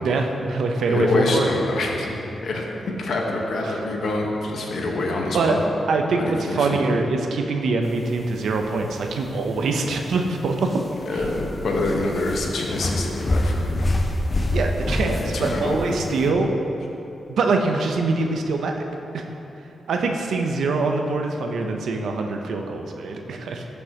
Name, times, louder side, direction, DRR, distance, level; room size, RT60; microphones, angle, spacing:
voice 1, 0.0-1.5 3.6-3.8 5.3-5.5 5.9-10.7 11.1-11.2 14.5-16.5 17.3-18.8 19.1-19.2 19.9-23.7, right 3 dB, 80° right, 3 dB, 0.7 m, -24 dB
voice 2, 0.9-5.6 6.2-6.8 11.1-13.9 15.1-16.0, left 2 dB, 75° left, -1 dB, 1.2 m, -26 dB
sound 1, 7.9-16.3, left 1 dB, 30° left, 0.7 m, -27 dB
14.0 x 5.3 x 2.9 m, 2.9 s
cardioid pair, 75°, 0 cm